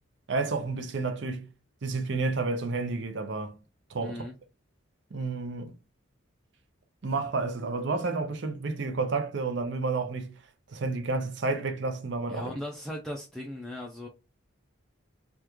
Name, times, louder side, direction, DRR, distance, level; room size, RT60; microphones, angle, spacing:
voice 1, 0.3-1.5 1.8-3.6 3.9-4.2 5.1-5.8 7.0-10.4 10.7-12.5, right 3 dB, 60° right, 0.5 m, -30 dB
voice 2, 4.0-4.3 12.3-14.1, left 1 dB, ahead, 0.4 m, -37 dB
3.5 x 2.3 x 2.9 m
head